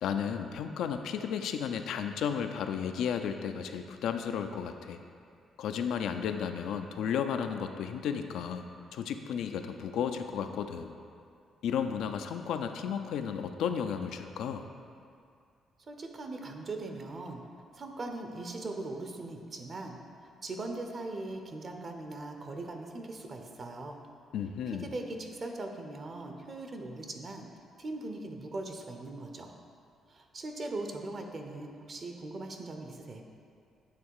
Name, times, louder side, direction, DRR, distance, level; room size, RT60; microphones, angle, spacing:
voice 1, 0.0-5.0 5.6-8.7 8.9-10.9 11.6-14.6 24.3-24.9, left 7 dB, 80° left, 7 dB, 0.4 m, -33 dB
voice 2, 15.9-17.4 17.7-20.0 20.2-24.0 24.7-27.5 27.8-29.5 30.1-33.2, right 2 dB, 45° right, 4 dB, 0.6 m, -40 dB
8.4 x 3.1 x 4.6 m, 2.3 s
cardioid pair, 90°, 0 cm